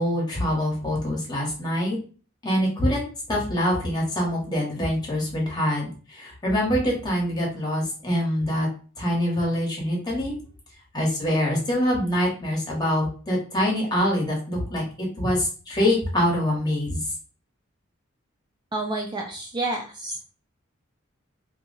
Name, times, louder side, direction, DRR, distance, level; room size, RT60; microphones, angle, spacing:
voice 1, 0.0-2.0 2.4-3.0 3.3-8.7 9.0-10.4 10.9-17.0, equal, 20° left, -3 dB, 1.3 m, -25 dB
voice 2, 18.7-20.3, right 2 dB, 20° right, 1 dB, 0.4 m, -30 dB
2.8 x 2.4 x 3.9 m, 0.38 s
head